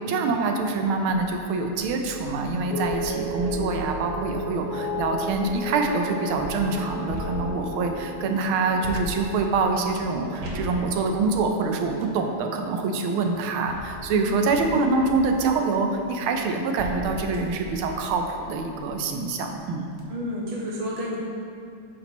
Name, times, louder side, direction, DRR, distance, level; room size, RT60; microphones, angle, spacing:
voice 1, 0.0-19.9, right 4 dB, 85° right, 4 dB, 1.5 m, -25 dB
sound 1, 1.0-1.3 1.7-5.8 6.4-7.9 8.8-12.2 13.1-19.1 19.5-19.6 19.9-20.0, left 1 dB, 65° right, 1.4 m, -39 dB
sound 2, 2.7-13.1 13.4-13.9, left 2 dB, 60° left, 1.2 m, -35 dB
voice 2, 14.1-14.5 20.1-21.2, equal, 35° right, -4 dB, 0.5 m, -31 dB
8.3 x 3.0 x 5.9 m, 2.4 s
omnidirectional pair, 2.3 m